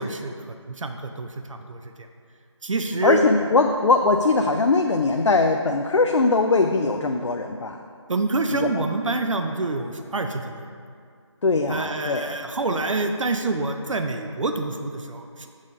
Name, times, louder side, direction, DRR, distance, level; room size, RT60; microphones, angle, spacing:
voice 1, 0.0-1.9 2.6-3.2 8.1-10.7 11.7-15.5, right 3 dB, 90° right, 6 dB, 0.5 m, -27 dB
voice 2, 3.0-7.8 8.5-8.8 11.4-12.4 12.7-12.8, left 3 dB, 70° left, 4 dB, 0.4 m, -21 dB
6.3 x 3.7 x 5.3 m, 2.2 s
figure-of-eight pair, 180°, 16 cm